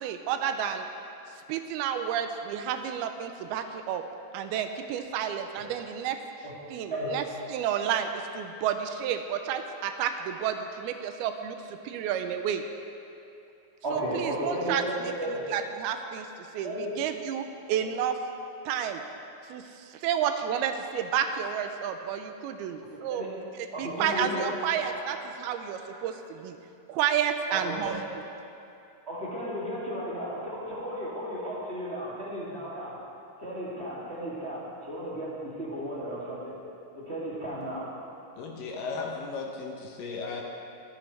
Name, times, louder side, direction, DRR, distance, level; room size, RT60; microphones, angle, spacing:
voice 1, 0.0-0.9 1.5-4.0 4.3-6.2 6.7-12.6 13.9-14.8 15.5-18.2 18.7-19.0 19.5-23.2 23.6-26.6 26.9-28.0, right 9 dB, 85° right, 7 dB, 2.5 m, -31 dB
voice 2, 13.8-15.4 16.6-16.9 23.1-23.3 23.7-24.4 24.8-25.0 27.5-27.8 29.1-33.0 33.4-36.5 37.0-37.9 40.2-40.4, equal, 20° right, -8 dB, 1.9 m, -34 dB
voice 3, 38.4-40.4, left 4 dB, 70° left, 1 dB, 2.3 m, -36 dB
22.0 x 9.0 x 3.3 m, 2.7 s
omnidirectional pair, 4.5 m